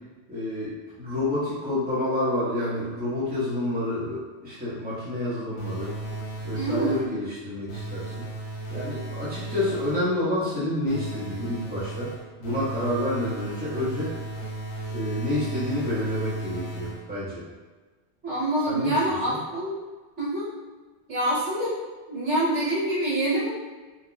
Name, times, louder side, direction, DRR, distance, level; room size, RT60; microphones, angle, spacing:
voice 1, 0.3-5.9 6.4-8.2 8.7-12.1 12.4-14.1 14.9-17.4 18.7-19.0 19.2-19.4, left 1 dB, 10° right, -11 dB, 1.1 m, -29 dB
sound 1, 5.6-7.2 7.7-10.2 10.9-17.3, right 2 dB, 65° left, 0.9 m, -35 dB
voice 2, 6.5-7.1 18.2-19.8 20.2-20.5 21.1-21.7 22.1-23.5, right 1 dB, 65° right, -8 dB, 1.3 m, -26 dB
3.9 x 2.7 x 2.3 m, 1.3 s
omnidirectional pair, 1.3 m